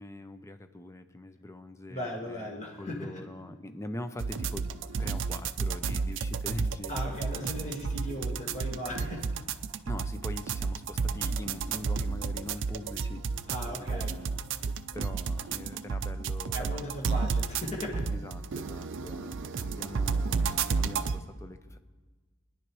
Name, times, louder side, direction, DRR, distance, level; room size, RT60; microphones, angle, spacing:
voice 1, 0.0-4.7 5.0-7.3 9.9-13.2 13.7-17.2 18.1-21.8, left 1 dB, 15° left, 9 dB, 0.5 m, -43 dB
voice 2, 1.9-3.3 6.9-9.3 13.5-14.1 16.5-18.1, equal, 30° left, -1 dB, 1.7 m, -37 dB
sound 1, 4.2-21.2, right 5 dB, 60° right, 0.5 m, -32 dB
23.0 x 10.5 x 3.1 m, 1.3 s
head